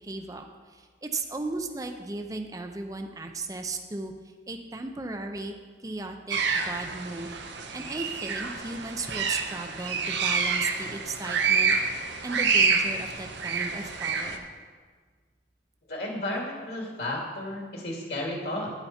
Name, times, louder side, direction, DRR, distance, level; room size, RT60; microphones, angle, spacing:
voice 1, 0.0-4.1 4.5-5.5 5.8-7.4 7.7-11.8 12.2-14.4, right 2 dB, 20° right, 5 dB, 0.5 m, -36 dB
sound 1, 6.3-14.4, right 5 dB, 75° right, 0.9 m, -28 dB
voice 2, 15.9-18.7, left 1 dB, 60° left, -1 dB, 2.4 m, -33 dB
10.5 x 8.9 x 4.3 m, 1.5 s
head